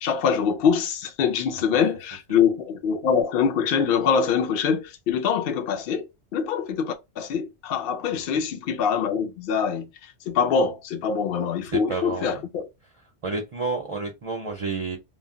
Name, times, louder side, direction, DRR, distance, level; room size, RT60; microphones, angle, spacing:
voice 1, 0.0-6.1 6.3-9.9 10.3-12.7, left 6 dB, 60° left, 0.6 m, -24 dB
voice 2, 11.7-12.4 13.2-15.0, right 4 dB, 45° right, 0.4 m, -30 dB
2.3 x 2.1 x 3.6 m
omnidirectional pair, 1.3 m